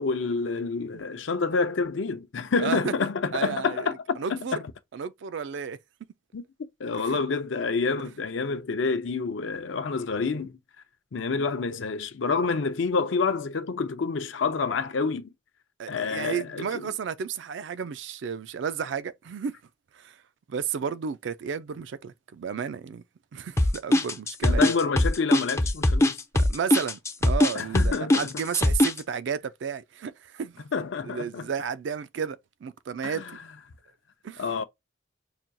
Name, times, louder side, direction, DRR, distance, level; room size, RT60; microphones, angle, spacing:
voice 1, 0.0-4.6 6.3-6.4 6.8-10.6 11.1-15.3 15.9-16.9 24.4-26.2 27.5-28.4 30.7-31.5 33.0-33.3 34.4-34.6, left 4 dB, 70° left, 0.5 m, -28 dB
voice 2, 2.6-2.9 3.3-4.6 4.9-5.8 6.9-7.2 15.8-19.6 19.9-20.2 20.5-23.0 23.3-24.7 26.4-30.6 31.1-33.2 34.2-34.4, right 7 dB, 65° right, 0.3 m, -32 dB
sound 1, 23.6-29.0, left 1 dB, 15° left, 0.3 m, -21 dB
5.8 x 2.3 x 2.6 m
head